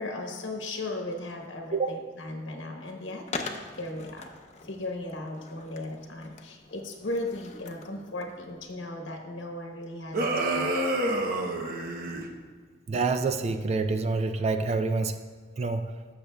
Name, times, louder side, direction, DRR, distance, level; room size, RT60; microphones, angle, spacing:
voice 1, 0.0-4.3 4.6-10.9, left 2 dB, 75° left, 2 dB, 1.0 m, -37 dB
Skateboard, 3.3-8.8, left 3 dB, 40° left, 0.6 m, -42 dB
sound 1, 10.1-12.3, right 1 dB, 50° right, 0.8 m, -28 dB
voice 2, 12.9-15.2 15.6-15.8, right 3 dB, 35° right, 8 dB, 0.3 m, -27 dB
16.0 x 6.7 x 2.3 m, 1.5 s
head